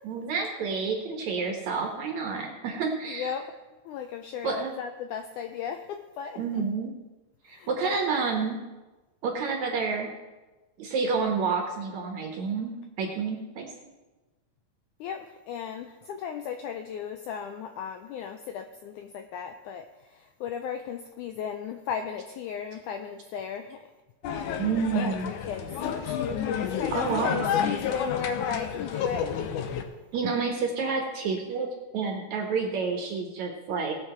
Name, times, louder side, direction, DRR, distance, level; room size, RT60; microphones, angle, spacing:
voice 1, 0.0-3.3 4.4-4.7 6.4-6.9 7.4-8.6 9.2-10.1 10.8-13.7 24.6-25.3 26.9-27.5 30.1-33.9, right 5 dB, 60° right, 1 dB, 2.2 m, -29 dB
voice 2, 3.1-3.6 3.8-6.6 7.5-8.0 15.0-23.8 24.3-29.3, left 7 dB, 90° left, 6 dB, 1.7 m, -36 dB
sound 1, 24.2-29.8, left 8 dB, 70° left, 1.9 m, -30 dB
18.5 x 7.2 x 4.4 m, 1.2 s
omnidirectional pair, 4.3 m